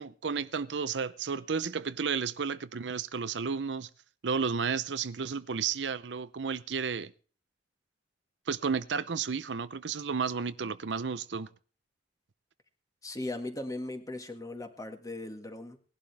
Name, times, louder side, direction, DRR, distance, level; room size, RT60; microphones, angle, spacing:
voice 1, 0.0-3.9 4.2-7.1 8.5-11.5, right 5 dB, 80° right, 0.6 m, -32 dB
voice 2, 13.0-15.8, left 2 dB, 20° left, 1.9 m, -38 dB
18.5 x 11.5 x 3.4 m
head